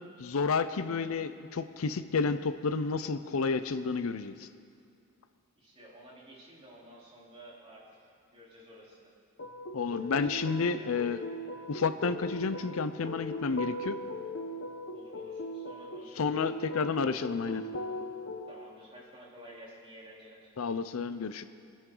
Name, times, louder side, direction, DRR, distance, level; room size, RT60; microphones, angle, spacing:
voice 1, 0.2-4.5 9.7-11.2 11.7-14.0 16.2-17.6 20.6-21.4, left 4 dB, 85° left, 11 dB, 0.5 m, -31 dB
voice 2, 5.6-7.8 8.3-9.1 10.0-11.0 14.9-16.5 18.5-20.5, right 1 dB, 25° right, -6 dB, 3.5 m, -52 dB
sound 1, 9.4-18.4, left 1 dB, 65° left, 0.9 m, -39 dB
23.0 x 10.5 x 3.9 m, 2.3 s
head